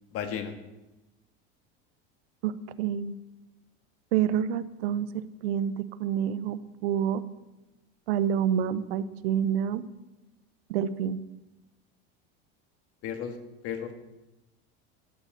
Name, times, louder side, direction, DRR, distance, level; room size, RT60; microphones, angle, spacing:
voice 1, 0.1-0.5 13.0-13.4 13.6-13.9, left 8 dB, 50° left, 7 dB, 1.9 m, -33 dB
voice 2, 2.8-3.2 4.1-7.2 8.1-9.9 10.7-11.2, right 9 dB, 85° right, 14 dB, 0.9 m, -28 dB
13.5 x 8.4 x 7.4 m, 1.0 s
supercardioid pair, 125°, 30 cm